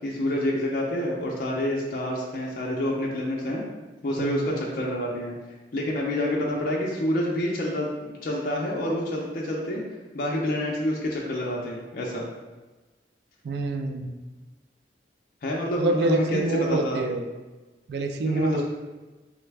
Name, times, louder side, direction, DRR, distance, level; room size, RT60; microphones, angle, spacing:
voice 1, 0.0-3.6 4.0-5.3 5.7-9.8 10.1-12.2 15.4-17.1 18.2-18.6, left 1 dB, 50° left, -3 dB, 0.4 m, -28 dB
voice 2, 13.4-14.1 15.8-17.2 17.9-18.6, right 2 dB, 65° right, 5 dB, 0.3 m, -26 dB
3.3 x 2.1 x 3.2 m, 1.2 s
head